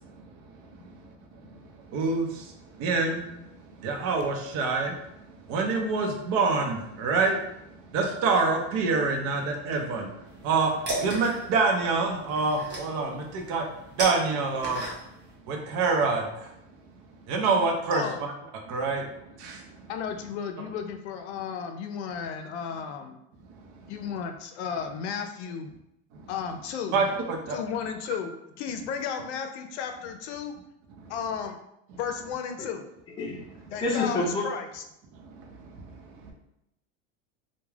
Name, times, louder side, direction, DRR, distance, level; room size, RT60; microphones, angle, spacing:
voice 1, 1.9-3.3 3.8-5.0 5.5-7.4 7.9-10.1 10.4-10.7 11.0-13.6 14.0-14.8 15.5-16.5 17.3-18.0 18.7-19.0 19.4-19.6 26.1-26.2 26.9-27.6 35.2-35.3 36.2-36.3, right 4 dB, 60° right, 2 dB, 0.7 m, -26 dB
sound 1, 10.3-15.3, right 1 dB, 30° right, 1.0 m, -36 dB
voice 2, 19.9-23.2 23.9-25.7 26.3-27.0 27.5-30.5 31.1-31.6 32.0-32.9 33.7-34.2 34.4-34.6, left 7 dB, 90° left, 6 dB, 0.5 m, -34 dB
voice 3, 33.8-34.5 36.3-36.4, left 2 dB, 15° left, -4 dB, 0.5 m, -28 dB
2.3 x 2.2 x 3.2 m, 0.83 s
supercardioid pair, 130°, 33 cm